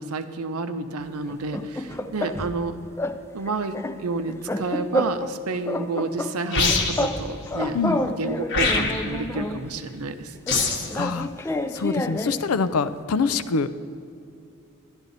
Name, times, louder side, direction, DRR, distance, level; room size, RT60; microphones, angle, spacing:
voice 1, 0.0-2.7 3.3-10.6, right 3 dB, 80° right, 9 dB, 0.7 m, -30 dB
sound 1, 1.3-2.6 3.0-3.2 3.5-5.4 5.7-7.2 7.5-9.6 10.5-12.5, left 1 dB, 10° left, 0.4 m, -29 dB
sound 2, 6.5-7.2 8.5-9.2 10.5-10.9, left 3 dB, 55° left, 1.2 m, -23 dB
voice 2, 10.9-11.3 11.7-13.7, left 4 dB, 75° left, 13 dB, 0.5 m, -24 dB
11.5 x 11.0 x 4.0 m, 2.7 s
head